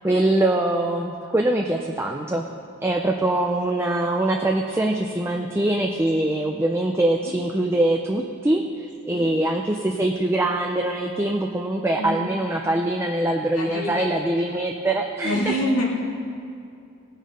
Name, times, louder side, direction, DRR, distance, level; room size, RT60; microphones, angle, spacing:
voice 1, 0.0-2.4 2.8-15.6, right 1 dB, 10° right, 2 dB, 0.4 m, -23 dB
voice 2, 12.0-12.7 13.6-14.1 15.2-15.8, equal, 90° left, -3 dB, 2.3 m, -27 dB
18.0 x 6.5 x 5.3 m, 2.5 s
head